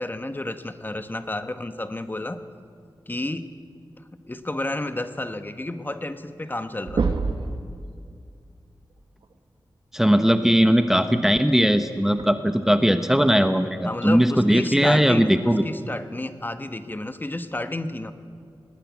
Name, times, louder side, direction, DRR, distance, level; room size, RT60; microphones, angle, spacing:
voice 1, 0.0-2.4 3.1-3.5 4.3-7.2 13.8-15.3 15.6-18.1, left 1 dB, 25° left, 10 dB, 1.1 m, -31 dB
sound 1, 5.9-6.0 6.3-6.6 6.8-7.5 9.2-9.3 11.2-11.3 12.2-12.3, right 4 dB, 80° right, 1.6 m, -25 dB
voice 2, 9.9-15.6, equal, 5° right, 9 dB, 0.9 m, -19 dB
19.5 x 19.0 x 8.3 m, 2.3 s
wide cardioid pair, 80°, 8 cm